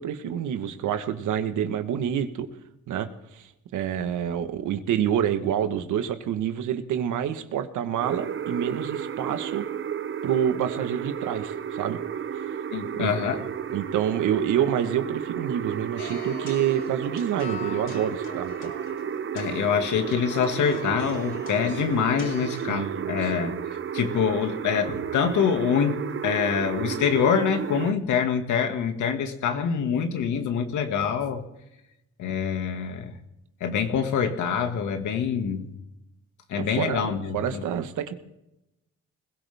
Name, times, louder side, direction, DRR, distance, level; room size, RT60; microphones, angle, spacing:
voice 1, 0.0-2.5 2.9-9.7 10.2-12.0 13.0-13.4 13.7-18.7 22.6-23.5 36.6-38.1, right 9 dB, 80° right, 9 dB, 1.5 m, -28 dB
sound 1, 8.0-27.9, right 8 dB, 40° right, 0.8 m, -32 dB
voice 2, 12.7-13.4 19.3-23.6 23.9-31.4 32.2-33.1 33.6-35.7 36.5-37.6, left 7 dB, 75° left, 6 dB, 2.1 m, -25 dB
sound 2, 16.0-22.7, left 4 dB, 40° left, 4.0 m, -43 dB
21.0 x 16.5 x 3.6 m, 0.88 s
cardioid pair, 90°, 30 cm